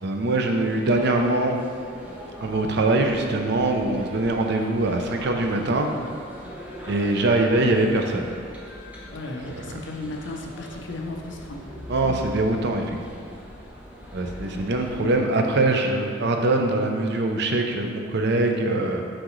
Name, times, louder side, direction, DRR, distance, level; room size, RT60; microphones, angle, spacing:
voice 1, 0.0-1.6 2.4-5.9 6.9-8.3 9.5-9.7 11.9-13.0 13.3-13.4 14.1-19.0, right 2 dB, 60° right, 3 dB, 0.6 m, -23 dB
sound 1, 0.6-15.2, equal, 5° right, 0.8 m, -41 dB
voice 2, 9.1-11.6 12.0-12.2 14.5-14.6, left 2 dB, 65° left, 1 dB, 0.7 m, -35 dB
6.0 x 5.0 x 3.1 m, 2.3 s
head